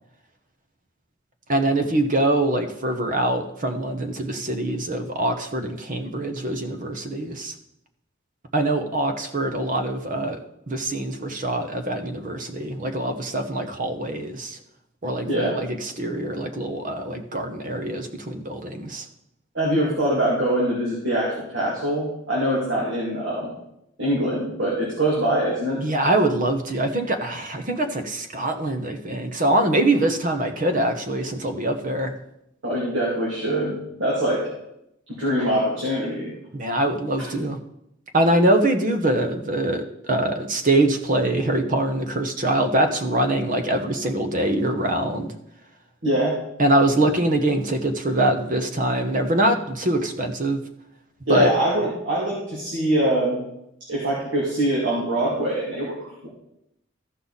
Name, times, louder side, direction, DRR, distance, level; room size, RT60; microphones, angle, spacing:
voice 1, 1.5-7.5 8.5-10.4 10.7-14.6 15.0-19.1 25.8-32.2 36.5-37.6 38.1-45.3 46.6-50.6 51.3-51.5, right 1 dB, 40° right, 7 dB, 1.0 m, -23 dB
voice 2, 15.2-15.6 19.5-23.5 24.0-25.8 32.6-34.5 35.2-36.3 46.0-46.4 51.3-53.4 53.9-56.3, right 1 dB, 65° right, -6 dB, 2.5 m, -23 dB
14.0 x 5.5 x 4.1 m, 0.80 s
head